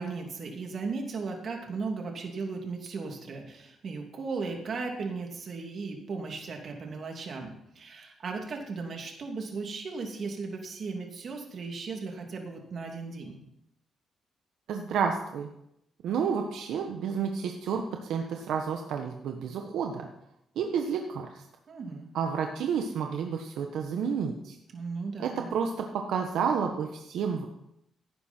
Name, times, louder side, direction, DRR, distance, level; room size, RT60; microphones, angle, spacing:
voice 1, 0.0-13.4 21.7-22.1 24.7-25.5, right 4 dB, 50° right, 2 dB, 2.8 m, -36 dB
voice 2, 14.7-15.5 16.0-20.1 20.6-21.4 22.1-24.6 25.2-27.5, right 6 dB, 80° right, 3 dB, 1.2 m, -30 dB
16.5 x 9.6 x 4.5 m, 0.81 s
cardioid pair, 105°, 0 cm